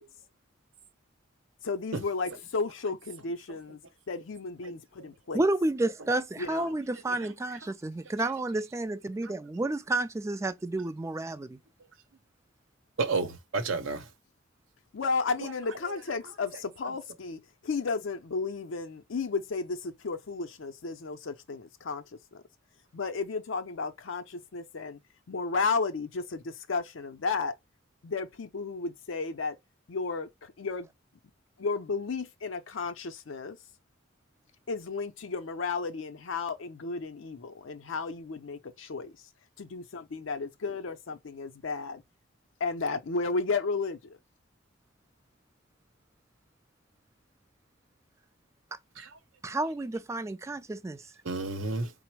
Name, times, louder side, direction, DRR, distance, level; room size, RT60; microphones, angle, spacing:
voice 1, 1.6-3.8 4.1-5.4 6.4-6.8 14.9-22.0 22.3-22.4 22.9-25.0 25.3-27.5 28.0-29.6 29.9-30.9 31.6-33.6 34.7-39.2 39.6-42.0 42.6-44.2, left 4 dB, 70° left, 0.5 m, -33 dB
voice 2, 5.3-11.6 48.7-48.8 49.4-51.1, right 2 dB, 15° right, 0.3 m, -30 dB
voice 3, 13.0-14.1 49.0-49.1 51.2-51.9, right 3 dB, 70° right, 0.7 m, -30 dB
4.1 x 2.0 x 4.4 m
head